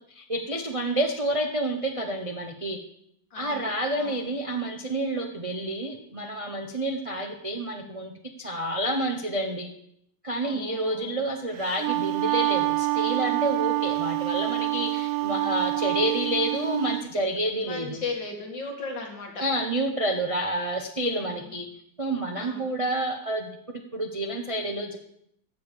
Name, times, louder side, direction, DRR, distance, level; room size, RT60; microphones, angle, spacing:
voice 1, 0.1-2.8 3.4-9.7 10.2-18.0 19.4-21.7 22.0-25.0, right 1 dB, 35° right, 4 dB, 0.5 m, -29 dB
voice 2, 3.3-3.7 4.0-4.2 10.4-11.2 15.2-15.7 17.6-19.4 21.1-21.4 22.3-22.7, left 3 dB, 75° left, 1 dB, 2.9 m, -37 dB
Wind instrument woodwind instrument, 11.6-17.0, right 20 dB, 90° right, 1.3 m, -27 dB
14.5 x 5.0 x 6.9 m, 0.72 s
omnidirectional pair, 2.0 m